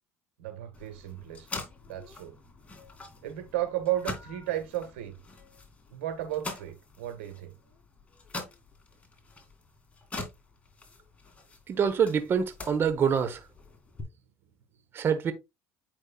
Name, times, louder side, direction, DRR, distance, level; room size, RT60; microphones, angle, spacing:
voice 1, 0.4-1.5 1.9-2.4 3.2-5.1 5.9-7.5, right 13 dB, 90° right, 1.6 m, -34 dB
sound 1, 0.7-14.0, left 3 dB, 20° left, 2.4 m, -44 dB
voice 2, 11.7-13.5 14.9-15.3, right 7 dB, 40° right, 1.0 m, -26 dB
8.2 x 5.4 x 2.3 m
supercardioid pair, 95°, 6 cm